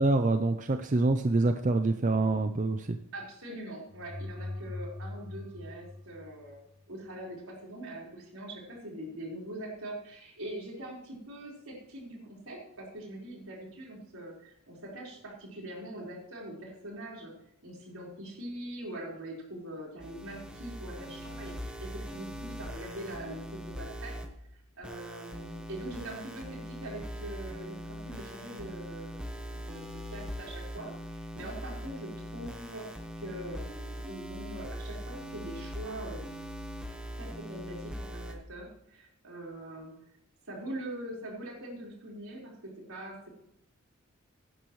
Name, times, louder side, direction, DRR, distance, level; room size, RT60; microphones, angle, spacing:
voice 1, 0.0-3.0, right 2 dB, 35° right, 8 dB, 0.4 m, -26 dB
voice 2, 3.1-17.3 17.6-21.5 21.8-24.2 24.7-32.9 33.2-36.3 37.2-39.9 40.5-43.3, right 1 dB, 80° right, -3 dB, 4.4 m, -43 dB
sound 1, 3.9-6.8, left 2 dB, 60° right, 3.0 m, -41 dB
sound 2, 20.0-24.3 24.8-38.3, equal, 5° right, 1.1 m, -41 dB
17.0 x 10.0 x 3.1 m, 0.76 s
head